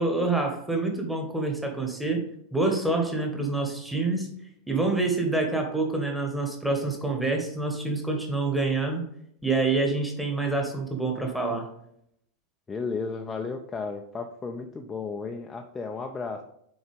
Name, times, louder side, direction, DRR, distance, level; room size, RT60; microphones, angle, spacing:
voice 1, 0.0-4.3 4.7-9.0 9.4-11.7, right 3 dB, ahead, 2 dB, 1.3 m, -27 dB
voice 2, 12.7-16.4, left 4 dB, 15° left, 3 dB, 0.5 m, -33 dB
6.4 x 4.4 x 3.5 m, 0.73 s
figure-of-eight pair, 90°, 0 cm